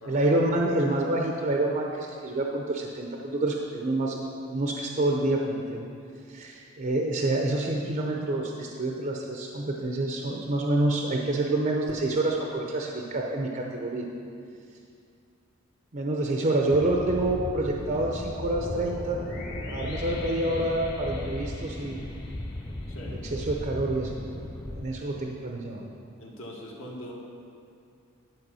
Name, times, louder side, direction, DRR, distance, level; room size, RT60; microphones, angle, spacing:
voice 1, 0.1-5.9 6.3-14.1 15.9-19.2 19.7-22.0 23.3-25.8, right 2 dB, 35° right, 0 dB, 0.6 m, -27 dB
sound 1, 16.7-24.9, left 1 dB, 10° left, 0.3 m, -37 dB
sound 2, 18.4-23.6, left 2 dB, 50° left, 1.8 m, -42 dB
voice 2, 22.9-23.3 26.2-27.1, left 1 dB, 65° left, -2 dB, 1.4 m, -42 dB
11.0 x 4.6 x 6.2 m, 2.4 s
head